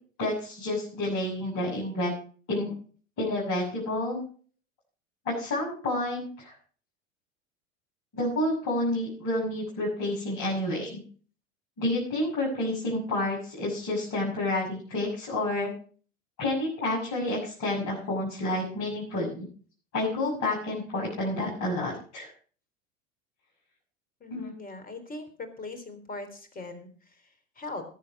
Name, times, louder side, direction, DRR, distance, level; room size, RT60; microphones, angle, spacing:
voice 1, 0.2-2.1 2.5-2.7 3.2-4.2 5.2-6.5 8.1-11.0 11.8-15.7 16.4-19.5 19.9-22.3 24.3-24.5, left 1 dB, 45° left, -5 dB, 6.9 m, -29 dB
voice 2, 24.2-27.8, left 2 dB, 20° left, 9 dB, 3.6 m, -41 dB
20.5 x 7.8 x 4.7 m, 0.42 s
figure-of-eight pair, 75°, 38 cm